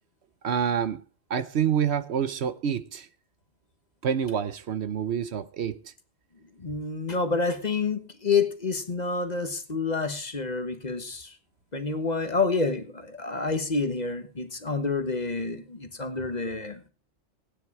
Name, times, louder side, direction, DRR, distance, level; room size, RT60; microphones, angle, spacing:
voice 1, 0.4-1.0 1.3-3.1 4.0-5.9, right 8 dB, 65° right, 1.0 m, -27 dB
voice 2, 6.6-11.4 11.7-16.8, left 4 dB, 40° left, 1.4 m, -28 dB
16.0 x 9.9 x 4.7 m
omnidirectional pair, 1.2 m